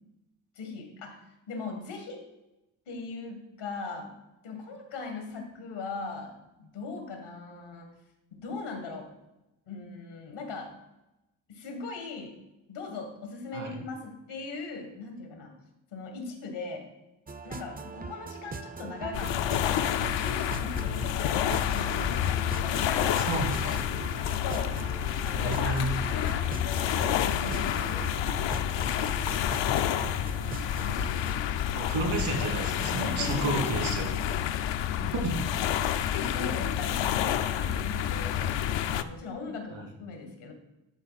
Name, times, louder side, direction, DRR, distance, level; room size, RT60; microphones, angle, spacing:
voice 1, 0.6-1.2 1.5-2.2 2.9-4.1 4.4-7.9 8.3-9.1 9.7-10.7 11.5-12.3 12.7-15.5 15.9-16.9 17.4-23.3 23.6-23.8 24.4-24.8 25.2-28.9 29.6-31.2 33.0-33.8 36.1-40.5, left 4 dB, 85° left, 4 dB, 1.9 m, -39 dB
sound 1, 17.3-31.4, right 4 dB, 20° right, 0.5 m, -41 dB
sound 2, 19.1-39.0, left 10 dB, 65° left, 0.6 m, -29 dB
voice 2, 23.3-23.8 25.3-25.9 31.7-34.1 35.0-35.3 39.7-39.8, right 2 dB, 75° right, 2 dB, 2.4 m, -31 dB
11.5 x 4.2 x 4.0 m, 0.96 s
cardioid pair, 65°, 48 cm